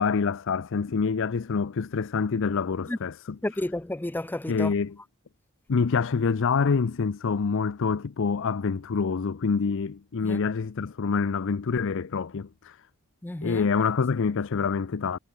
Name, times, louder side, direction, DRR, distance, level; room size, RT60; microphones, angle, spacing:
voice 1, 0.0-3.4 4.5-5.0 5.7-12.8 13.4-15.2, left 5 dB, 60° left, 0.5 m, -26 dB
voice 2, 3.4-4.7 10.2-10.4 13.2-13.7, left 1 dB, 10° left, 0.4 m, -31 dB
head